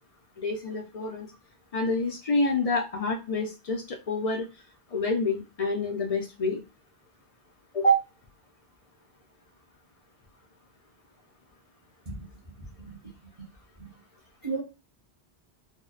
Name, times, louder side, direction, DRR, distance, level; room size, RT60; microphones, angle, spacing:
voice 1, 0.4-1.3 1.7-4.5 4.9-6.6 7.7-8.0, left 1 dB, 60° left, 1 dB, 0.3 m, -27 dB
voice 2, 12.1-13.1 13.8-13.9 14.4-14.6, right 3 dB, 35° right, -4 dB, 0.7 m, -37 dB
2.6 x 2.1 x 2.3 m, 0.28 s
omnidirectional pair, 1.1 m